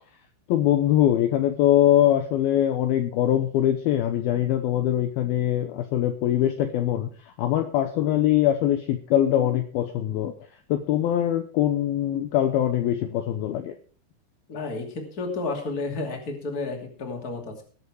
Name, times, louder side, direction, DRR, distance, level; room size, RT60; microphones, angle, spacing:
voice 1, 0.5-10.3 10.7-13.8, left 12 dB, 75° left, 7 dB, 2.4 m, -22 dB
voice 2, 14.5-17.6, left 3 dB, 25° left, 2 dB, 2.3 m, -31 dB
20.0 x 7.3 x 4.8 m, 0.41 s
omnidirectional pair, 5.0 m